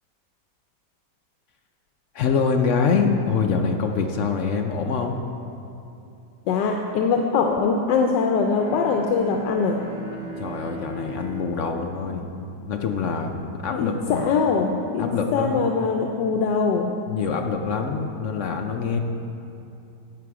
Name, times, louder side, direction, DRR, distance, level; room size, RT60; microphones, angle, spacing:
voice 1, 2.1-5.2 10.4-12.3 12.7-14.3 15.0-15.7 17.1-19.0, left 5 dB, 65° left, 4 dB, 0.7 m, -25 dB
voice 2, 6.5-9.8 13.7-16.9, left 5 dB, 85° left, 2 dB, 1.3 m, -22 dB
Bowed string instrument, 8.4-13.3, right 2 dB, 70° right, 2.4 m, -38 dB
11.0 x 8.6 x 4.7 m, 2.7 s
omnidirectional pair, 1.9 m